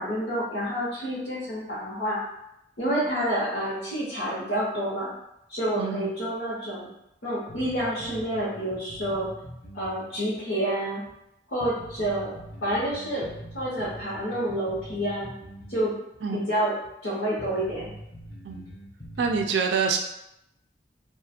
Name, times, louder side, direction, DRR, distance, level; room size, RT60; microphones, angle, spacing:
voice 1, 0.0-2.2 2.8-5.1 5.5-6.9 7.2-9.3 9.7-11.0 11.5-12.3 12.6-13.2 13.5-15.3 15.7-15.9 16.3-16.7 17.0-17.9, right 1 dB, 70° left, -10 dB, 1.0 m, -28 dB
voice 2, 5.8-6.1 16.2-16.4 18.4-18.6 19.2-20.0, right 5 dB, 70° right, 3 dB, 0.3 m, -26 dB
sound 1, 7.5-10.1 10.4-10.5 11.1-11.2 11.6-15.9 16.1-16.2 16.8-16.9 17.4-19.4, equal, 20° left, 0.6 m, -43 dB
2.4 x 2.4 x 2.7 m, 0.82 s
head